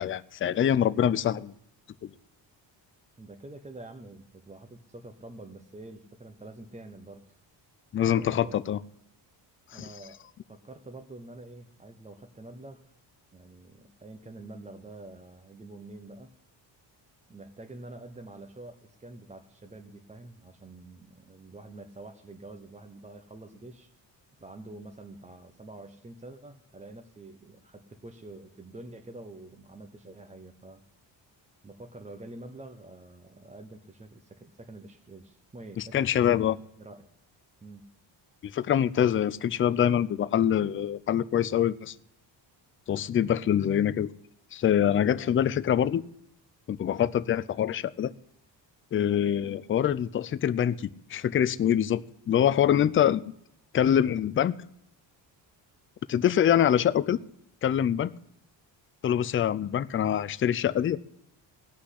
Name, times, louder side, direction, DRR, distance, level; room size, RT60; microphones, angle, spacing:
voice 1, 0.0-1.5 2.0-2.1 7.9-8.8 9.7-9.8 35.8-36.6 38.4-41.9 42.9-44.1 44.5-46.0 46.7-48.1 48.9-53.3 53.7-54.6 56.1-57.2 57.6-58.1 59.0-61.0, left 10 dB, 30° left, 15 dB, 0.4 m, -25 dB
voice 2, 3.2-7.4 8.2-8.6 9.7-12.8 13.3-16.3 17.3-23.9 24.4-30.8 31.6-37.1 37.6-37.8, right 2 dB, 15° right, 6 dB, 0.8 m, -47 dB
17.0 x 6.0 x 9.9 m, 0.76 s
cardioid pair, 145°, 45 cm